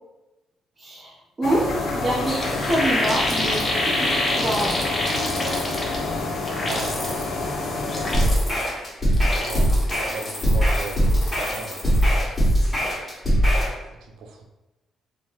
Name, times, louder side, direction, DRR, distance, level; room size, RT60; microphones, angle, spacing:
voice 1, 0.8-5.0, right 1 dB, 30° right, -5 dB, 0.6 m, -27 dB
sound 1, 1.4-8.2, left 2 dB, 65° left, 0.5 m, -28 dB
sound 2, 1.8-1.9 2.1-6.1 6.4-7.3 7.8-8.7 9.1-12.1 12.4-12.7, left 1 dB, 30° left, 0.7 m, -28 dB
voice 2, 6.6-8.0 9.3-12.5 14.0-14.5, right 4 dB, 80° right, 2 dB, 0.4 m, -38 dB
sound 3, 8.1-13.7, equal, 15° left, 1.3 m, -21 dB
3.2 x 2.1 x 2.8 m, 1.0 s
cardioid pair, 90°, 0 cm